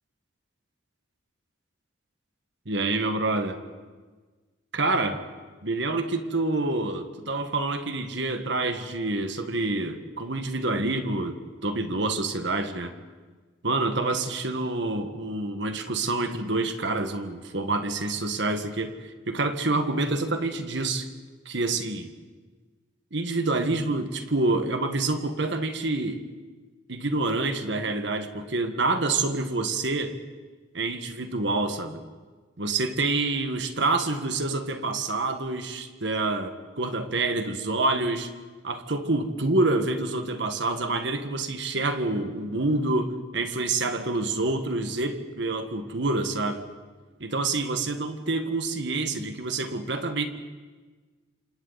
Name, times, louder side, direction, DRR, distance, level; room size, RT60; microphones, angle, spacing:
voice 1, 2.6-3.6 4.7-5.2 5.6-12.9 13.6-18.9 19.3-21.1 21.4-22.1 23.1-26.2 26.9-30.2 30.7-32.0 32.6-38.3 38.6-46.7 47.2-50.3, right 2 dB, 60° right, 7 dB, 1.5 m, -27 dB
28.0 x 26.5 x 4.1 m, 1.4 s
head